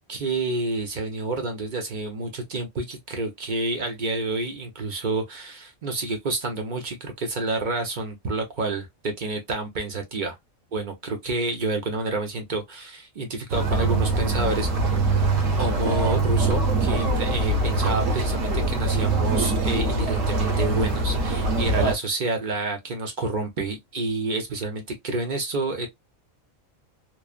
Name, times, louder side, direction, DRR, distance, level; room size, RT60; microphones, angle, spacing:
voice 1, 0.1-10.4 10.7-10.9 11.2-14.7 15.6-25.9, right 2 dB, 45° right, 0.7 m, -29 dB
sound 1, 13.5-21.9, right 2 dB, 70° right, 1.2 m, -23 dB
3.1 x 2.0 x 2.3 m
omnidirectional pair, 1.4 m